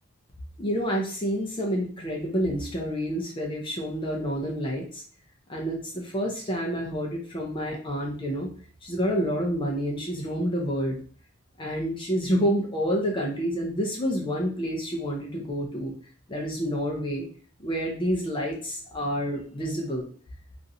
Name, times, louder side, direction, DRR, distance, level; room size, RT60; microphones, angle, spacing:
voice 1, 0.6-5.0 5.5-8.5 8.8-11.0 11.6-15.9 16.3-17.3 17.6-20.1, equal, 25° left, -1 dB, 0.6 m, -28 dB
2.9 x 2.5 x 2.6 m, 0.43 s
head